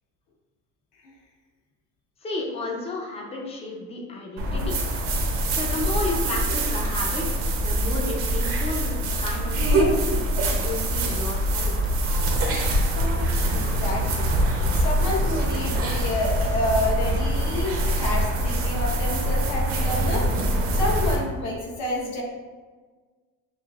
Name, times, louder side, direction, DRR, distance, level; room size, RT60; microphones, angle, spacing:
voice 1, 2.2-4.8 5.5-10.2 10.6-12.5, left 2 dB, 20° left, -1 dB, 0.6 m, -32 dB
sound 1, 4.4-21.2, right 1 dB, 45° right, 0.7 m, -24 dB
voice 2, 13.5-14.3 14.8-20.3 20.7-22.2, left 1 dB, 70° left, -2 dB, 1.1 m, -29 dB
6.7 x 2.5 x 2.4 m, 1.4 s
cardioid pair, 165°, 31 cm